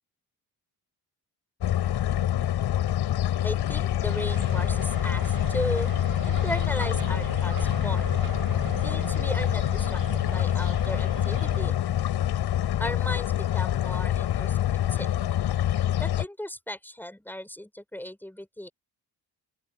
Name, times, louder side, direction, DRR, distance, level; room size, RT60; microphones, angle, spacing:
sound 1, 1.6-16.2, left 11 dB, 90° left, 7.2 m, -26 dB
voice 1, 3.4-5.9 6.2-8.1 8.8-11.7 12.8-15.1 16.0-18.7, left 1 dB, 5° left, 7.4 m, -36 dB
sound 2, 4.1-11.7, right 8 dB, 60° right, 7.6 m, -39 dB
open air
cardioid pair, 100°, 39 cm